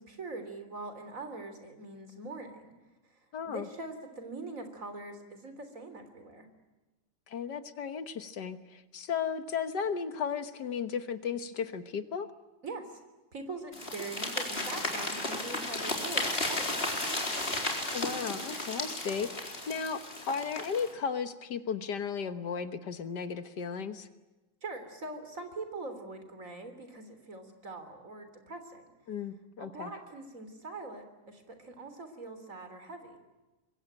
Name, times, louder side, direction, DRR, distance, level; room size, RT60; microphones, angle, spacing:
voice 1, 0.0-2.7 3.4-6.5 12.6-13.0 13.3-16.9 24.6-28.8 29.6-33.2, right 2 dB, 50° right, 8 dB, 3.8 m, -43 dB
voice 2, 3.3-3.7 7.3-12.3 17.9-24.1 29.1-29.9, left 6 dB, 75° left, 11 dB, 1.9 m, -35 dB
sound 1, 13.7-20.9, left 1 dB, 35° left, 4.3 m, -34 dB
26.0 x 22.5 x 8.9 m, 1.1 s
omnidirectional pair, 1.9 m